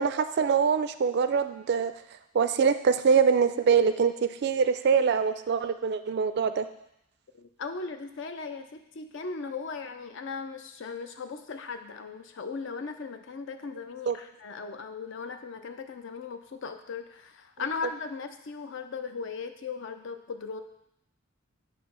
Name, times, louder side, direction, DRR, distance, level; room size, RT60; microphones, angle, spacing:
voice 1, 0.0-1.9 2.3-6.7 14.1-14.2, right 6 dB, 55° right, 11 dB, 0.3 m, -24 dB
voice 2, 7.3-20.6, left 5 dB, 65° left, 8 dB, 0.5 m, -38 dB
7.9 x 2.8 x 5.5 m, 0.81 s
head